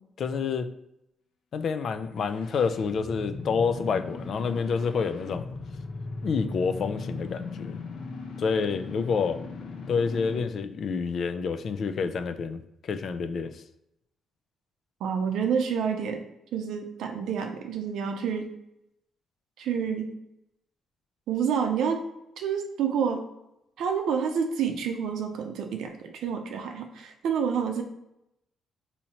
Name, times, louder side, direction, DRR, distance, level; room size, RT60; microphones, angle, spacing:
voice 1, 0.2-0.7 1.5-5.5 6.2-7.8 8.4-9.4 9.9-13.6, left 5 dB, 55° left, 9 dB, 0.3 m, -28 dB
sound 1, 2.0-10.6, left 3 dB, 85° left, 0.7 m, -38 dB
voice 2, 15.0-16.2 16.5-18.5 19.6-20.1 21.3-22.0 22.4-23.2 23.8-27.8, right 7 dB, 80° right, 5 dB, 0.6 m, -28 dB
4.2 x 2.7 x 2.9 m, 0.84 s
cardioid pair, 90°, 0 cm